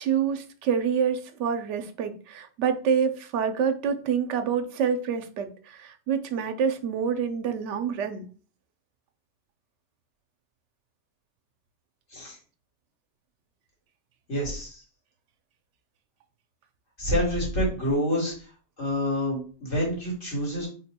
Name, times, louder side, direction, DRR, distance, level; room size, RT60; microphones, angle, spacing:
voice 1, 0.0-8.3, right 7 dB, 90° right, 8 dB, 0.9 m, -27 dB
voice 2, 14.3-14.8 17.0-18.3 18.8-20.7, equal, 80° left, -4 dB, 2.2 m, -27 dB
3.7 x 2.2 x 4.1 m, 0.40 s
omnidirectional pair, 1.2 m